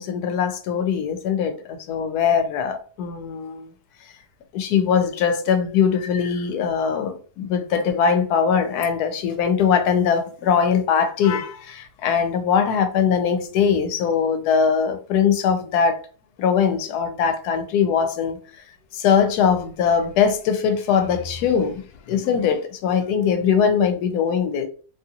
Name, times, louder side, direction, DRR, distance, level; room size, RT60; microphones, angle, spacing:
voice 1, 0.0-3.7 4.5-16.0 16.4-18.4 18.9-24.7, left 7 dB, 85° left, 1.1 m, -21 dB
2.8 x 2.7 x 2.4 m
omnidirectional pair, 1.6 m